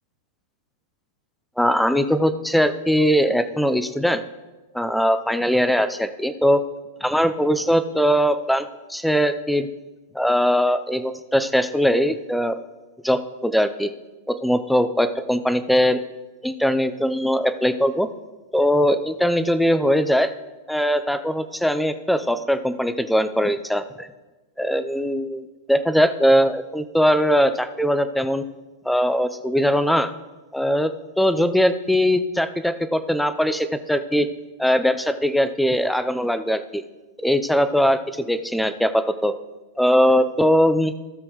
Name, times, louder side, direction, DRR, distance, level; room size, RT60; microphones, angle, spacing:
voice 1, 1.6-4.2 4.7-6.6 7.0-9.7 10.1-12.6 13.0-13.9 14.3-16.0 16.4-18.1 18.5-20.3 20.7-24.1 24.6-28.4 28.8-30.1 30.5-30.9 31.2-34.3 34.6-36.8 37.2-39.3 39.8-40.9, equal, ahead, 11 dB, 0.5 m, -20 dB
16.5 x 6.2 x 3.1 m, 1.2 s
hypercardioid pair, 135°, 0 cm